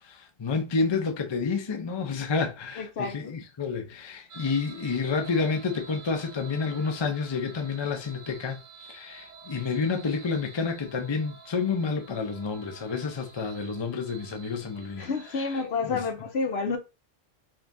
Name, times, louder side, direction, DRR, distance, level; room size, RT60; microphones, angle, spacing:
voice 1, 0.0-8.6 8.9-15.1 15.3-16.0, left 4 dB, 40° left, 0.4 m, -29 dB
voice 2, 2.8-3.4 15.0-16.8, left 4 dB, 60° left, 0.9 m, -29 dB
sound 1, 4.3-15.5, right 4 dB, 85° right, 1.3 m, -49 dB
5.1 x 2.4 x 2.6 m
omnidirectional pair, 1.3 m